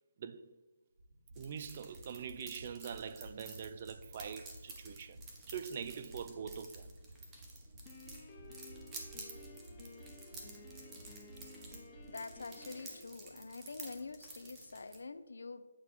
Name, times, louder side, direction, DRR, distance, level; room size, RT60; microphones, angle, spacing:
voice 1, 0.2-0.5 1.4-6.9, right 7 dB, 35° right, 0.3 m, -44 dB
sound 1, 1.0-12.7 13.0-13.1 13.3-13.4, right 1 dB, 65° right, 2.1 m, -55 dB
sound 2, 1.3-15.0, right 3 dB, 15° right, 0.9 m, -53 dB
Piano, 7.9-13.0, left 3 dB, 20° left, 0.8 m, -54 dB
voice 2, 12.1-15.6, left 3 dB, 70° left, 0.6 m, -46 dB
8.6 x 4.0 x 4.4 m
hypercardioid pair, 165°, 0 cm